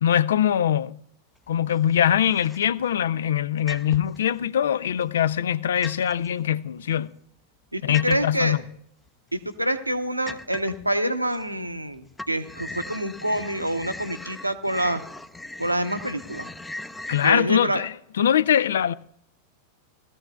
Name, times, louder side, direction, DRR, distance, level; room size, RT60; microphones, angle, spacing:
voice 1, 0.0-1.0 1.5-7.1 7.8-8.6 17.1-18.9, left 9 dB, 65° left, 0.4 m, -22 dB
sound 1, 1.5-1.9 2.3-2.9 3.7-4.2 4.8-5.5 5.8-6.3 7.9-8.5 9.1-9.2 9.6-9.7 10.3-10.9 11.3-11.9 12.1-17.3, left 2 dB, 5° left, 0.6 m, -39 dB
voice 2, 7.7-8.6 9.3-15.0 15.6-16.5 17.2-17.8, right 1 dB, 85° right, 0.9 m, -26 dB
18.5 x 14.0 x 2.3 m
figure-of-eight pair, 90°, 0 cm